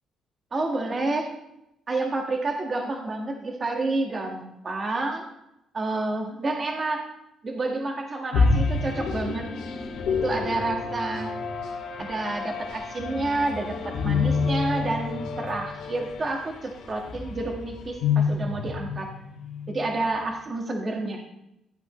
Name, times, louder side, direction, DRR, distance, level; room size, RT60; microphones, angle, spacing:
voice 1, 0.5-1.3 1.9-5.2 5.7-7.0 7.4-9.4 10.2-11.3 12.0-19.1 19.7-21.2, right 2 dB, 35° right, 2 dB, 1.6 m, -29 dB
sound 1, 8.3-19.9, left 4 dB, 90° left, 2.3 m, -28 dB
14.5 x 8.8 x 3.2 m, 0.85 s
cardioid pair, 90°, 0 cm